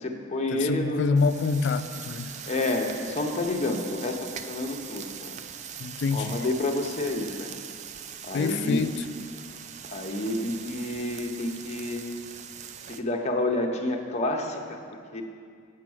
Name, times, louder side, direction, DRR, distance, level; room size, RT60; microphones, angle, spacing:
voice 1, 0.0-1.0 2.5-5.3 6.1-7.5 8.2-8.9 9.9-12.0 12.9-14.8 15.1-15.2, left 2 dB, 35° left, 2 dB, 0.7 m, -29 dB
voice 2, 0.5-2.4 5.8-6.5 8.3-9.1, left 4 dB, 55° left, 11 dB, 0.3 m, -26 dB
sound 1, 1.1-13.0, right 8 dB, 35° right, 0.3 m, -41 dB
8.3 x 5.9 x 6.2 m, 2.2 s
head